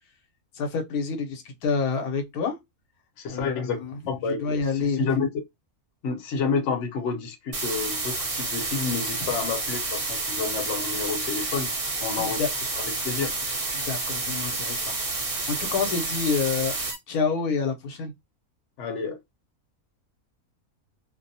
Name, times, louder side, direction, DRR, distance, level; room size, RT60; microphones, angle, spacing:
voice 1, 0.5-2.6 3.3-3.9 4.4-5.0 12.2-12.5 13.7-16.8 17.1-18.1, left 5 dB, 85° left, 1.1 m, -28 dB
voice 2, 3.2-5.3 6.0-11.7 12.0-12.4 12.8-13.3 18.8-19.2, left 5 dB, 60° left, 0.9 m, -29 dB
sound 1, 7.5-16.9, right 3 dB, 45° right, 0.9 m, -29 dB
2.6 x 2.0 x 2.6 m
omnidirectional pair, 1.5 m